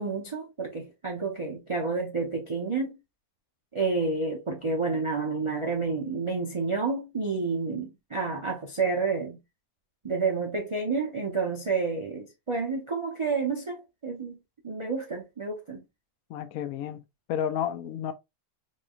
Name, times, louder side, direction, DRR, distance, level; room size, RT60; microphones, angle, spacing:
voice 1, 0.0-3.0 3.7-9.4 10.0-14.4 14.6-15.8, right 4 dB, 50° right, 0.3 m, -29 dB
voice 2, 16.3-17.0 17.3-18.1, left 9 dB, 75° left, 1.0 m, -31 dB
3.7 x 3.1 x 2.3 m
omnidirectional pair, 1.5 m